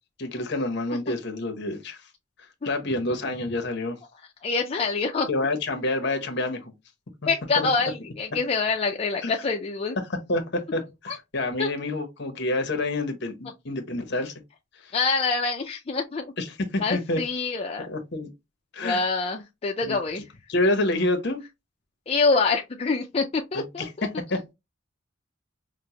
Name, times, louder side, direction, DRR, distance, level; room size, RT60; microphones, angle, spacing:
voice 1, 0.2-2.0 2.6-4.0 5.3-6.7 7.6-7.7 9.2-9.3 10.3-14.3 14.8-14.9 16.4-17.2 17.9-18.3 18.7-19.0 19.8-20.0 20.5-21.4 23.5-24.4, left 2 dB, 60° left, 0.9 m, -28 dB
voice 2, 4.4-5.3 7.3-10.0 11.1-11.2 11.6-11.7 14.9-16.3 16.8-17.9 18.8-20.3 22.1-24.1, left 4 dB, 30° left, 0.4 m, -26 dB
5.1 x 2.1 x 2.8 m
head